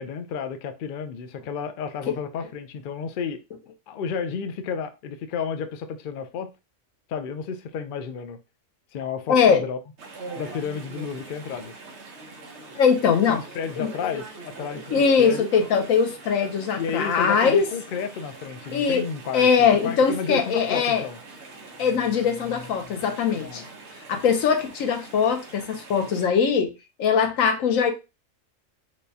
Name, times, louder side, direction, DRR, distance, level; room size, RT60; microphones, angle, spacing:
voice 1, 0.0-3.4 3.9-6.5 7.1-8.4 8.9-9.8 10.4-11.7 13.3-15.5 16.8-19.5 19.8-21.2 23.4-23.6, left 6 dB, 60° left, 0.5 m, -31 dB
voice 2, 9.3-9.6 12.8-13.4 13.8-13.9 14.9-17.6 18.7-19.0 19.3-21.0 21.8-23.6 24.1-26.7 27.0-27.9, left 6 dB, 85° left, 1.1 m, -21 dB
Chatter / Stream, 10.0-26.3, right 3 dB, 60° right, 1.1 m, -43 dB
4.7 x 2.2 x 2.7 m
omnidirectional pair, 1.3 m